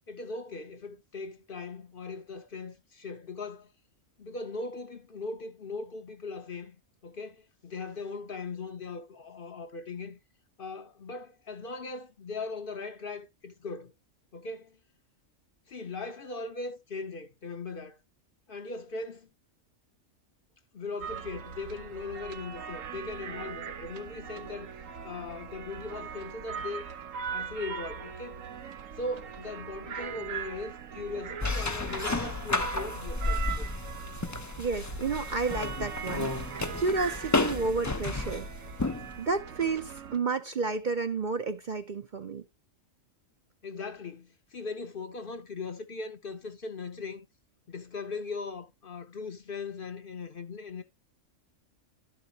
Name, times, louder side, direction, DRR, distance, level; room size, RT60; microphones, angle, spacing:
voice 1, 0.1-3.7 4.2-6.8 7.0-10.2 10.6-13.9 14.3-14.8 15.7-18.0 18.5-19.3 20.7-24.7 25.0-26.8 27.3-28.4 29.0-33.7 43.6-47.3 47.7-50.8, left 3 dB, 50° left, 0.9 m, -39 dB
sound 1, 21.0-40.2, right 7 dB, 80° right, 1.3 m, -40 dB
sound 2, 31.4-39.2, left 2 dB, 20° left, 0.4 m, -32 dB
voice 2, 34.6-38.5 39.2-42.4, right 4 dB, 45° right, 0.7 m, -31 dB
11.5 x 7.2 x 2.8 m
omnidirectional pair, 1.3 m